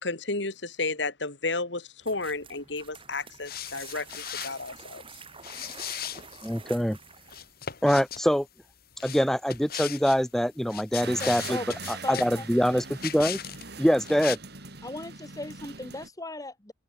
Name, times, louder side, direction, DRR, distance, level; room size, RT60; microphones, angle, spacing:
voice 1, 0.0-5.0, left 3 dB, 70° left, 3.3 m, -32 dB
sound 1, 2.0-7.6, right 5 dB, 30° right, 4.5 m, -48 dB
sound 2, 3.4-4.7 5.4-6.5 7.3-8.2 9.0-10.2 10.6-12.4 13.0-13.6 13.9-14.4, left 9 dB, 55° left, 2.1 m, -37 dB
voice 2, 6.4-7.0 7.8-8.5 9.0-11.6 12.1-13.4 13.8-14.4, equal, ahead, 1.3 m, -24 dB
sound 3, 11.0-16.1, right 4 dB, 60° right, 7.9 m, -41 dB
voice 3, 11.2-12.8 14.8-16.7, left 2 dB, 20° left, 2.0 m, -38 dB
open air
head